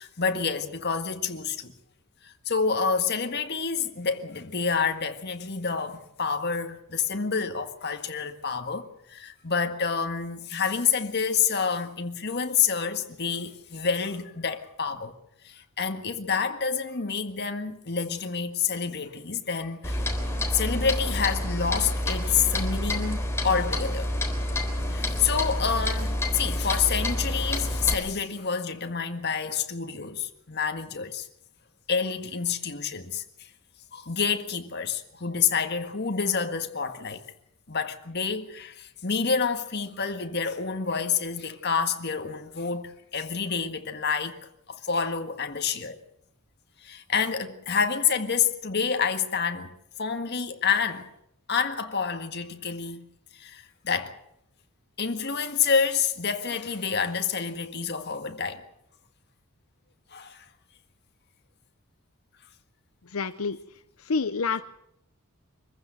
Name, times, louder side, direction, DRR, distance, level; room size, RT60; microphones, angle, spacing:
voice 1, 0.0-1.7 2.2-15.2 15.4-20.1 20.5-24.1 24.9-31.3 31.9-33.5 33.9-37.2 37.7-44.4 44.7-46.0 46.8-49.7 50.0-51.1 51.5-53.1 53.3-54.1 55.0-58.6 60.1-60.5, left 6 dB, 55° left, 1.8 m, -28 dB
Clock, 19.8-27.9, left 1 dB, 15° left, 3.6 m, -28 dB
voice 2, 63.1-63.6 64.0-64.6, left 4 dB, 85° left, 0.8 m, -27 dB
25.0 x 15.0 x 8.0 m
head